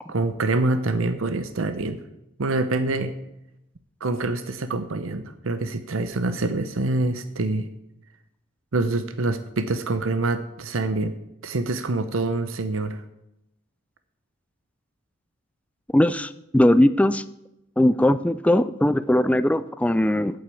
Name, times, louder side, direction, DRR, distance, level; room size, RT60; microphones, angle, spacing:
voice 1, 0.1-2.0 2.4-3.2 4.0-7.7 8.7-11.1 11.4-13.0, right 2 dB, 90° right, 11 dB, 0.8 m, -25 dB
voice 2, 15.9-17.2 17.8-20.4, left 1 dB, 5° left, 14 dB, 0.4 m, -20 dB
8.8 x 7.9 x 8.4 m, 0.87 s
head